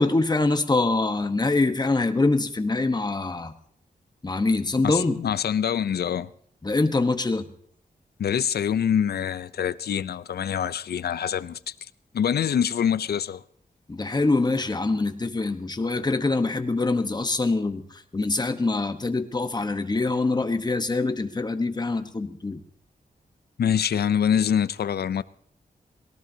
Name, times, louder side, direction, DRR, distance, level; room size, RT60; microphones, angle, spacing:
voice 1, 0.0-3.5 4.2-5.2 6.6-7.5 13.9-22.6, left 3 dB, 25° left, 1.1 m, -24 dB
voice 2, 4.8-6.3 8.2-11.7 12.1-13.4 23.6-25.2, left 8 dB, 85° left, 0.5 m, -25 dB
22.0 x 18.0 x 2.8 m
wide cardioid pair, 115°, 16 cm